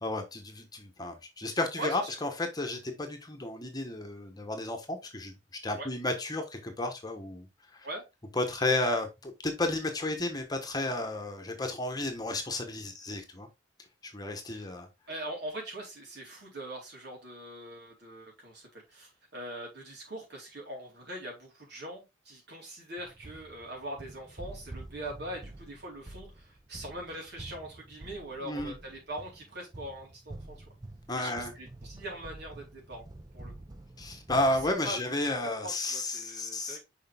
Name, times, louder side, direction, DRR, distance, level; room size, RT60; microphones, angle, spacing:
voice 1, 0.0-5.3 5.6-7.5 7.7-7.9 8.3-13.5 14.0-14.9 28.4-28.7 31.1-31.5 34.0-36.8, left 2 dB, 20° left, 1.2 m, -32 dB
voice 2, 1.8-2.1 5.7-5.9 7.8-8.0 8.7-8.8 14.5-14.7 15.1-30.6 31.2-33.0 33.3-33.5 34.5-34.6 34.8-35.3 35.6-36.8, right 1 dB, 65° right, 4.1 m, -42 dB
sound 1, 23.0-34.7, right 2 dB, 20° right, 0.6 m, -48 dB
6.6 x 5.2 x 3.5 m
head